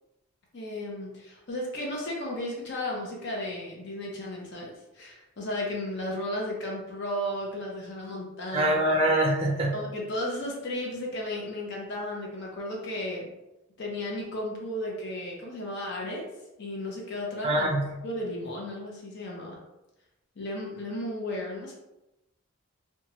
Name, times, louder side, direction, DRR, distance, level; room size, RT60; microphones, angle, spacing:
voice 1, 0.5-4.7 4.9-8.8 9.7-13.3 13.8-16.3 16.6-17.8 18.0-19.6 20.4-21.7, left 1 dB, 55° left, -2 dB, 0.6 m, -34 dB
voice 2, 8.5-9.7 17.4-17.9, right 1 dB, 30° right, 0 dB, 0.4 m, -24 dB
2.9 x 2.2 x 2.8 m, 0.95 s
head